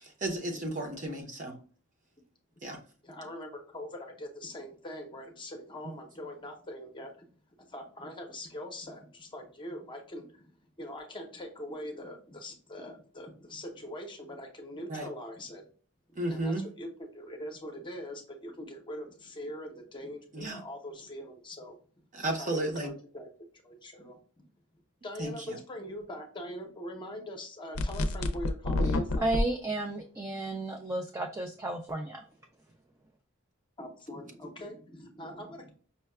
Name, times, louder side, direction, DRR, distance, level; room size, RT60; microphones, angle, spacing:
voice 1, 0.2-1.6 2.6-2.8 14.9-15.1 16.2-16.6 20.3-20.6 22.1-22.9 25.2-25.3, right 1 dB, 35° right, 2 dB, 0.8 m, -33 dB
voice 2, 3.0-7.3 7.6-10.4 10.8-15.6 16.1-21.8 22.2-23.3 23.6-24.5 25.0-29.3 33.8-35.7, left 1 dB, 20° left, 3 dB, 0.7 m, -42 dB
sound 1, 27.7-29.4, left 2 dB, 70° left, 0.5 m, -28 dB
voice 3, 28.8-32.3, right 2 dB, 15° right, 3 dB, 0.3 m, -33 dB
5.4 x 2.2 x 2.2 m, 0.42 s
head